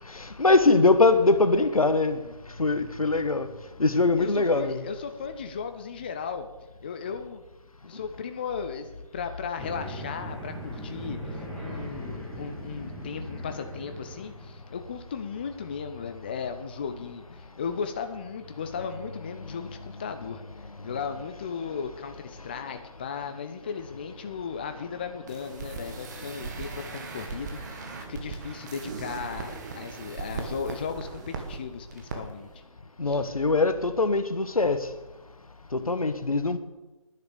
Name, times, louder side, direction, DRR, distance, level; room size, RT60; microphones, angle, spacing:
voice 1, 0.1-2.2 2.6-3.5 3.8-4.8 33.0-34.8 35.7-36.6, left 3 dB, 80° left, 1.3 m, -22 dB
voice 2, 4.2-6.5 6.8-7.4 7.9-20.4 20.8-27.6 28.1-32.5 33.1-33.2, left 6 dB, 15° left, 0.4 m, -36 dB
sound 1, 9.6-14.6, equal, ahead, 2.9 m, -39 dB
sound 2, 25.3-31.6 31.9-32.2 32.4-32.6, right 4 dB, 30° right, 1.8 m, -38 dB
10.5 x 9.9 x 6.8 m
figure-of-eight pair, 150°, 18 cm